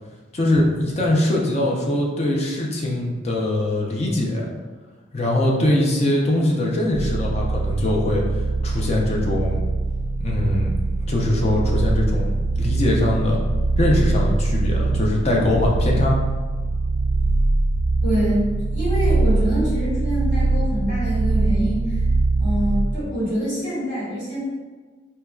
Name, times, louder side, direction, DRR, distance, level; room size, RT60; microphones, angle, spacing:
voice 1, 0.3-4.5 5.1-8.2 8.6-9.6 10.2-10.7 11.1-13.4 13.8-16.2, left 1 dB, 35° left, -2 dB, 0.5 m, -22 dB
sound 1, 6.9-23.1, right 2 dB, 55° right, 0.3 m, -22 dB
voice 2, 18.0-18.5 18.7-21.8 22.4-24.4, equal, 65° left, -8 dB, 1.5 m, -25 dB
4.3 x 2.1 x 2.3 m, 1.4 s
head